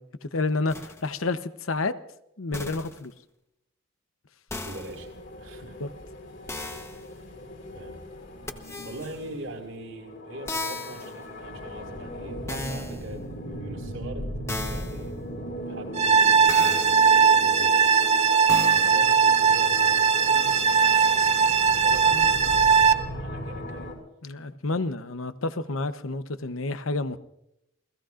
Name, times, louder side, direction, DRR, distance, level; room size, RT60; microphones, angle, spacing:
voice 1, 0.0-2.0 2.4-3.1 5.8-5.9 22.1-22.2 24.2-27.2, left 3 dB, 85° left, 11 dB, 0.9 m, -30 dB
sound 1, 0.7-1.1 2.5-3.0 4.5-5.0 6.5-7.0 8.5-9.2 10.5-11.2 12.5-13.1 14.5-15.1 16.5-17.1 18.5-19.1, left 2 dB, 15° left, 1.0 m, -36 dB
voice 2, 4.6-5.1 5.4-5.8 6.4-6.6 7.7-8.0 8.8-15.1 15.6-17.8 18.7-21.1 21.7-23.9, right 1 dB, 85° right, 2 dB, 4.9 m, -42 dB
sound 2, 4.7-23.9, equal, 60° left, 5.2 m, -38 dB
sound 3, 15.9-22.9, right 6 dB, 35° right, 0.7 m, -19 dB
29.5 x 17.5 x 2.5 m, 0.81 s
head